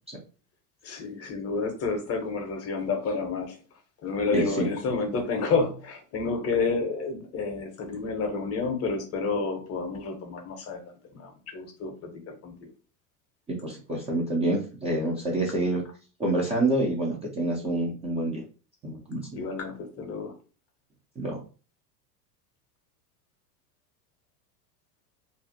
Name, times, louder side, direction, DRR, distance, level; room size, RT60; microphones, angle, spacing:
voice 1, 0.8-3.6 4.0-10.8 11.1-12.7 19.3-20.4, left 4 dB, 30° left, 0.7 m, -30 dB
voice 2, 4.3-4.7 13.5-15.8 16.2-18.4 18.8-19.2 21.2-21.4, right 2 dB, 15° right, 0.4 m, -27 dB
2.5 x 2.3 x 2.6 m
figure-of-eight pair, 80°, 50 cm